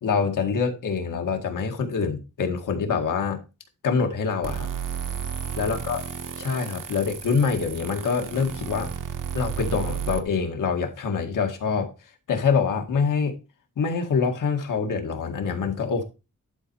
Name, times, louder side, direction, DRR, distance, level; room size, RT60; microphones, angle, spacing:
voice 1, 0.0-3.4 3.8-4.7 5.6-6.0 6.4-8.9 9.3-11.9 12.3-13.4 13.8-16.0, left 5 dB, 85° left, 2.0 m, -25 dB
sound 1, 4.4-10.2, right 8 dB, 90° right, 1.2 m, -33 dB
11.5 x 4.4 x 4.7 m
wide cardioid pair, 140°, 31 cm